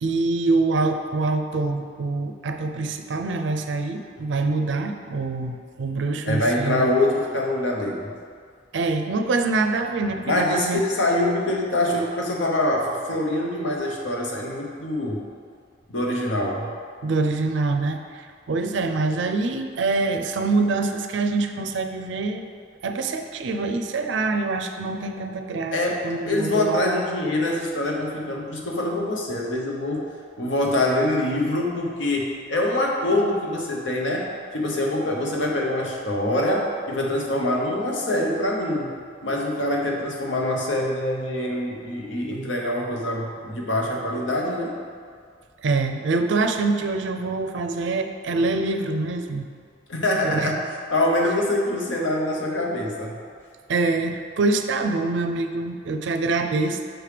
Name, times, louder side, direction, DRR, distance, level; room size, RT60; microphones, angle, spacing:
voice 1, 0.0-6.9 8.7-10.8 17.0-22.4 22.8-25.8 26.0-26.8 45.6-49.5 50.2-50.5 53.7-56.9, right 3 dB, 70° right, 6 dB, 0.4 m, -25 dB
voice 2, 6.3-8.1 10.3-15.2 15.9-16.7 25.7-30.1 30.4-39.0 39.2-44.7 49.9-53.1, left 1 dB, 85° left, -1 dB, 0.9 m, -24 dB
6.0 x 3.3 x 5.0 m, 2.1 s
head